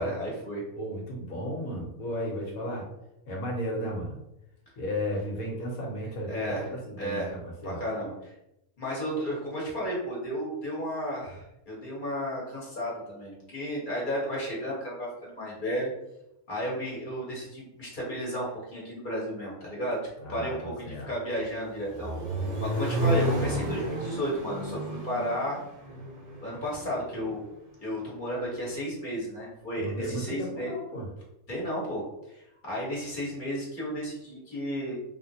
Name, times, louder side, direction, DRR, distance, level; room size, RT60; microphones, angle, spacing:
voice 1, 0.0-0.6 6.3-6.7 7.0-7.4 7.6-8.3 8.8-15.9 16.5-20.0 20.3-22.1 22.6-25.6 26.4-27.4 27.8-30.7 31.5-32.0 32.3-34.9, equal, 40° left, -5 dB, 1.1 m, -33 dB
voice 2, 0.7-2.9 3.3-4.2 4.8-7.8 20.2-21.1 29.8-31.0, equal, 75° left, -1 dB, 1.2 m, -34 dB
Accelerating revving vroom, 21.4-27.4, right 1 dB, 60° right, 0.3 m, -31 dB
3.4 x 2.5 x 2.7 m, 0.87 s
omnidirectional pair, 1.5 m